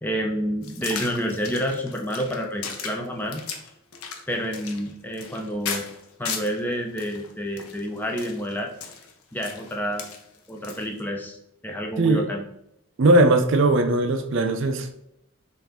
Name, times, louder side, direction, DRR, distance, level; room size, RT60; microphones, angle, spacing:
voice 1, 0.0-3.4 4.3-5.8 6.2-8.7 9.3-10.0 10.5-11.4 11.6-12.4, equal, 10° left, 1 dB, 0.4 m, -29 dB
sound 1, 0.6-6.6 7.0-11.0, left 6 dB, 80° left, 0.7 m, -36 dB
voice 2, 13.0-15.0, right 2 dB, 55° right, 7 dB, 0.4 m, -19 dB
5.5 x 2.6 x 3.6 m, 0.80 s
head